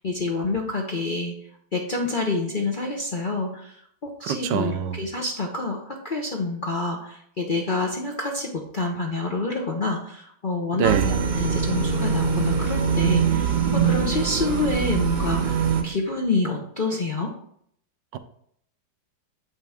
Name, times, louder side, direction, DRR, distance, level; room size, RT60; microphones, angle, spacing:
voice 1, 0.0-1.3 1.7-3.8 4.0-17.3, left 3 dB, 45° left, 0 dB, 0.6 m, -28 dB
voice 2, 4.2-5.0 10.8-11.2 18.1-18.2, right 9 dB, 80° right, 9 dB, 1.3 m, -24 dB
sound 1, 10.8-15.8, right 6 dB, 50° right, 0.5 m, -23 dB
7.8 x 5.7 x 3.5 m, 0.67 s
omnidirectional pair, 1.9 m